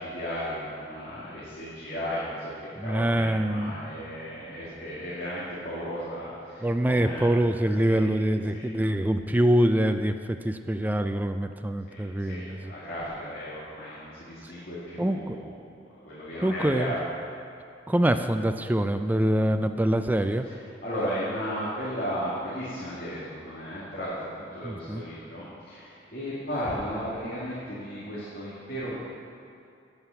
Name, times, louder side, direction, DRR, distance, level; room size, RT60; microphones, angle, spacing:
voice 1, 0.0-7.3 7.8-8.1 8.5-8.6 11.9-15.4 16.0-17.0 20.4-20.6 20.8-29.0, equal, 55° left, -9 dB, 2.2 m, -35 dB
voice 2, 2.8-3.8 6.6-12.7 14.4-14.5 15.0-15.4 16.4-16.9 17.9-20.5 24.6-25.0, right 1 dB, 10° right, 8 dB, 0.3 m, -25 dB
9.5 x 8.9 x 5.7 m, 2.6 s
head